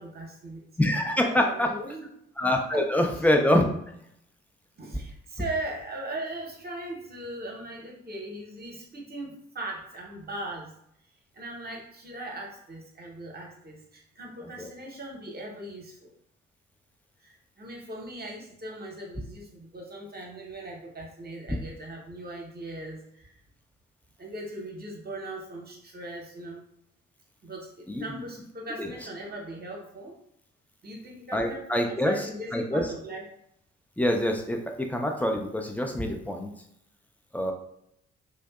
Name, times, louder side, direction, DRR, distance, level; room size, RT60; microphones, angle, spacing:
voice 1, 0.0-0.6 1.2-2.1 2.7-3.1 4.8-10.7 11.3-16.1 17.2-23.4 24.2-26.6 27.4-30.2 30.8-33.2, right 1 dB, 30° right, -1 dB, 0.9 m, -39 dB
voice 2, 0.8-1.7 2.4-3.7 14.6-14.7 27.9-28.2 28.8-28.9 31.3-32.9 34.0-36.5 37.3-37.5, left 1 dB, 5° left, 2 dB, 0.4 m, -25 dB
2.5 x 2.2 x 2.3 m, 0.74 s
hypercardioid pair, 40°, 34 cm